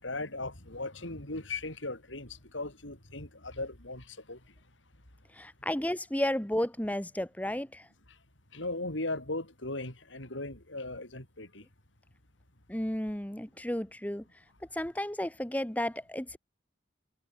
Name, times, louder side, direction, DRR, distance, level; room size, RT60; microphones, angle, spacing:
voice 1, 0.0-4.4 8.5-11.6, left 2 dB, 85° left, 6.1 m, -38 dB
voice 2, 5.3-7.9 12.7-14.2 14.7-16.4, left 1 dB, 10° left, 1.0 m, -33 dB
head